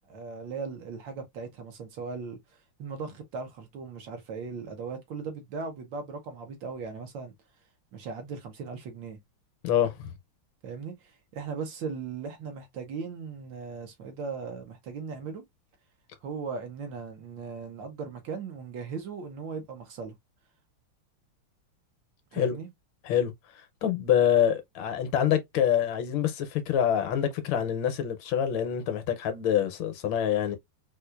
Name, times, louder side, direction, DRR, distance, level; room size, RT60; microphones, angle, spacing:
voice 1, 0.1-7.3 7.9-9.2 10.6-15.4 16.2-20.1 22.3-22.7, right 5 dB, 70° right, 1.5 m, -38 dB
voice 2, 9.6-10.1 22.3-22.6 23.0-30.6, left 9 dB, 75° left, 1.3 m, -26 dB
4.2 x 2.4 x 2.2 m
omnidirectional pair, 2.3 m